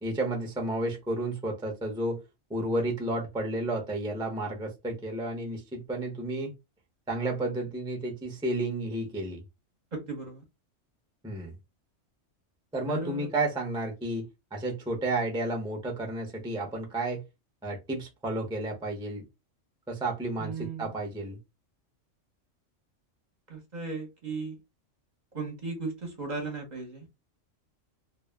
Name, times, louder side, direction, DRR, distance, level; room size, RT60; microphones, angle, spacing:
voice 1, 0.0-2.2 2.5-6.5 7.1-9.4 11.2-11.5 12.7-17.2 17.6-19.2 19.9-21.4, right 2 dB, 5° right, 0.4 m, -32 dB
voice 2, 9.9-10.4 12.9-13.3 20.4-20.8 23.5-24.5 25.3-27.1, right 4 dB, 45° right, 0.7 m, -36 dB
2.3 x 2.0 x 3.3 m
omnidirectional pair, 1.3 m